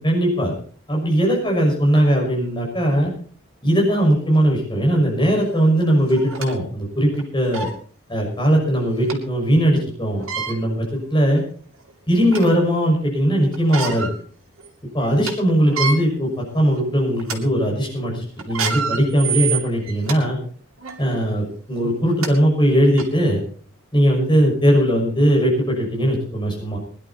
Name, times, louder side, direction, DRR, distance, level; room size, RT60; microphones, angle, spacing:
voice 1, 0.0-0.5 0.9-3.1 3.6-7.7 8.1-11.4 12.1-14.1 14.9-20.4 21.0-23.4 23.9-26.8, equal, 20° left, -2 dB, 6.1 m, -19 dB
sound 1, 5.3-5.4 6.1-6.5 7.1-7.2 7.5-7.8 9.1-9.2 10.1-10.5 11.3-11.4 11.9-12.6 13.5-14.2 14.6-14.7 15.0-15.3 15.6-16.0 16.6-16.8 17.2-17.4 18.4-20.2 20.8-21.0 21.8-21.9 22.2-22.3 23.0-23.1, right 6 dB, 80° right, 2.7 m, -27 dB
21.0 x 11.0 x 4.3 m, 0.43 s
head